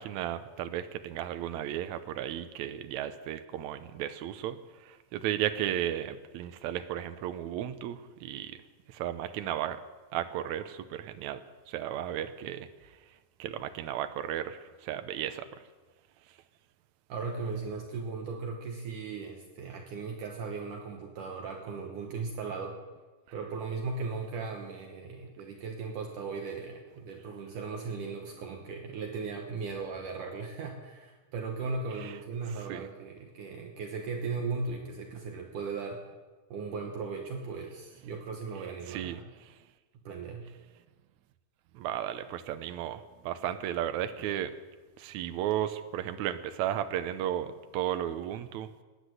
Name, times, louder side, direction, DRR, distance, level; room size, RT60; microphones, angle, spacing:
voice 1, 0.0-4.6 4.8-8.6 8.9-9.8 10.1-11.4 11.7-12.7 13.4-15.5 32.0-32.1 32.7-32.9 38.9-39.2 41.7-44.5 45.0-48.8, right 11 dB, 85° right, 10 dB, 1.6 m, -34 dB
voice 2, 17.1-22.8 23.3-36.0 36.5-39.2 40.1-40.5, right 4 dB, 65° right, 2 dB, 2.5 m, -37 dB
18.0 x 10.0 x 7.8 m, 1.3 s
omnidirectional pair, 4.3 m